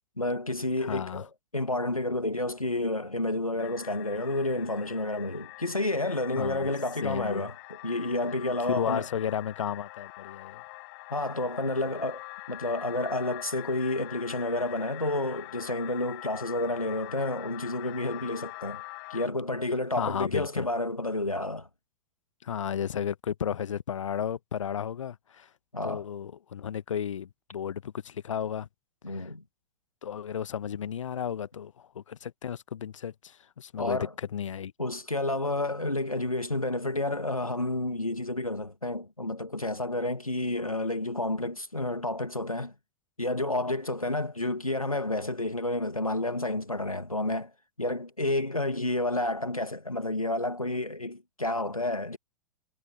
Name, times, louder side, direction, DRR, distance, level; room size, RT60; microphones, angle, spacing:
voice 1, 0.2-7.5 7.8-9.1 11.1-12.2 12.5-18.8 19.1-21.7 25.7-26.1 29.0-29.4 33.8-34.1 34.8-42.7 43.2-47.5 47.8-52.2, left 2 dB, 90° left, 2.2 m, -30 dB
voice 2, 0.8-1.2 6.4-6.7 7.0-7.5 8.7-10.6 20.0-20.7 22.4-25.5 25.8-28.7 29.1-29.3 30.0-34.7, left 8 dB, 65° left, 1.2 m, -33 dB
sound 1, 3.6-19.3, left 24 dB, 40° left, 1.7 m, -44 dB
figure-of-eight pair, 100°, 18 cm